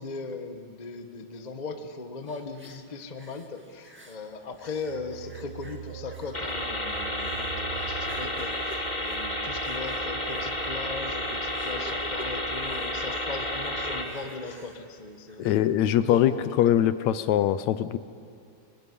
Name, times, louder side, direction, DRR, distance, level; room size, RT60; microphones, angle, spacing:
voice 1, 0.0-15.7 16.0-16.7, left 4 dB, 40° left, 6 dB, 0.6 m, -38 dB
sound 1, 2.2-4.3 4.6-15.7 16.1-16.2, equal, 5° right, 1.3 m, -48 dB
sound 2, 4.4-15.2 15.5-15.7, right 12 dB, 70° right, 2.2 m, -46 dB
sound 3, 6.3-14.0, left 1 dB, 15° left, 2.4 m, -31 dB
voice 2, 15.4-16.3 16.6-18.0, left 11 dB, 75° left, 13 dB, 2.0 m, -22 dB
25.0 x 19.5 x 9.9 m, 2.5 s
omnidirectional pair, 3.4 m